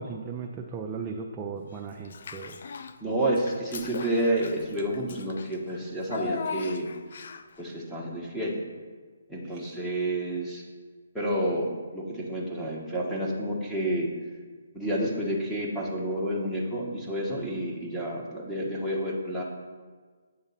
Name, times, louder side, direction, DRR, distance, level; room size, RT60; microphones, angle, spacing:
voice 1, 0.0-2.6 9.4-9.8, right 5 dB, 20° right, 1 dB, 0.5 m, -37 dB
Child speech kid speaking / Bathtub (filling or washing), 2.0-3.0 3.3-7.6, left 5 dB, 55° left, 0.4 m, -38 dB
voice 2, 3.0-6.9 7.6-8.6 9.3-10.6 11.1-14.1 14.7-19.4, right 1 dB, ahead, -6 dB, 1.2 m, -29 dB
8.0 x 3.7 x 5.7 m, 1.5 s
hypercardioid pair, 150°, 0 cm